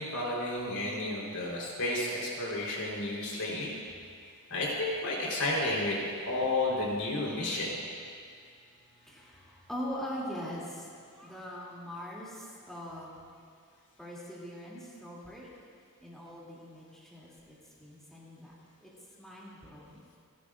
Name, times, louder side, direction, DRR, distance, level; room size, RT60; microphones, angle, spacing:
voice 1, 0.0-3.7 4.5-7.8, left 2 dB, 75° left, -3 dB, 4.1 m, -32 dB
voice 2, 8.1-13.2 14.0-15.5 16.0-18.5 18.8-18.9 19.2-20.0, equal, ahead, -7 dB, 2.8 m, -42 dB
29.0 x 12.0 x 2.6 m, 2.2 s
head